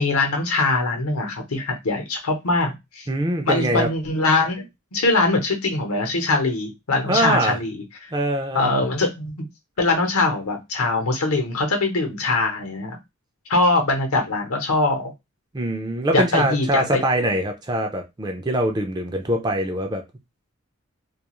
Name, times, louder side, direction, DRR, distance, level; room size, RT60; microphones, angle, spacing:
voice 1, 0.0-3.1 3.4-8.1 8.5-9.3 9.8-13.0 13.5-15.1 16.1-17.0, left 3 dB, 80° left, 0.8 m, -22 dB
voice 2, 3.1-3.9 7.1-7.6 8.1-8.8 15.5-20.0, right 1 dB, 20° right, 0.3 m, -23 dB
2.3 x 2.3 x 3.0 m
head